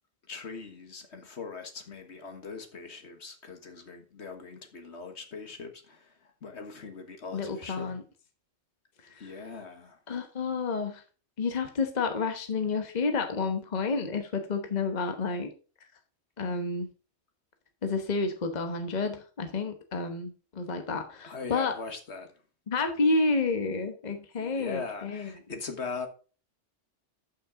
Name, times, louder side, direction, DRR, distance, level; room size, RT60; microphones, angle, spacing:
voice 1, 0.3-7.9 9.2-10.0 21.2-22.3 24.4-26.1, left 4 dB, 70° left, 1.7 m, -41 dB
voice 2, 7.3-8.0 9.1-9.3 10.1-11.0 11.4-15.5 16.4-16.9 17.8-21.7 22.7-25.3, left 4 dB, 40° left, 1.2 m, -30 dB
12.0 x 5.9 x 3.7 m
omnidirectional pair, 1.2 m